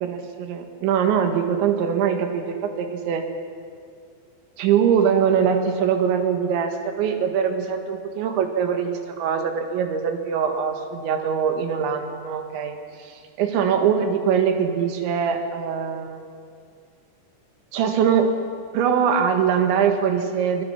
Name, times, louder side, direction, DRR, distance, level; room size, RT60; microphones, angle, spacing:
voice 1, 0.0-3.2 4.6-16.2 17.7-18.4 18.7-20.6, right 7 dB, 85° right, 5 dB, 4.0 m, -22 dB
23.5 x 21.5 x 5.9 m, 2.3 s
omnidirectional pair, 5.1 m